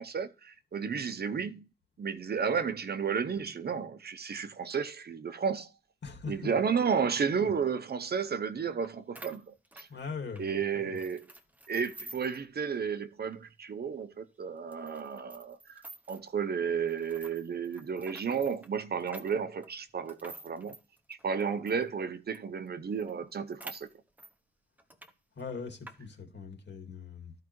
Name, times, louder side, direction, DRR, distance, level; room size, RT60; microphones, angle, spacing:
voice 1, 0.0-1.7 2.0-5.7 6.3-9.9 10.4-11.3 11.7-15.8 16.1-20.7 21.1-23.9, right 6 dB, 55° right, 0.8 m, -32 dB
voice 2, 6.0-6.5 7.3-7.5 9.9-11.0 25.4-27.3, left 5 dB, 65° left, 2.2 m, -41 dB
sound 1, 8.8-8.9 9.2-10.5 11.0-12.4 12.8-12.9 13.2-13.4 13.9-14.0 14.7-16.3 16.9-21.8 22.3-22.4 22.7-22.8 23.0-24.3 24.8-25.1 25.4-26.0, right 2 dB, 10° right, 0.9 m, -49 dB
14.0 x 4.8 x 3.0 m
wide cardioid pair, 165°, 20 cm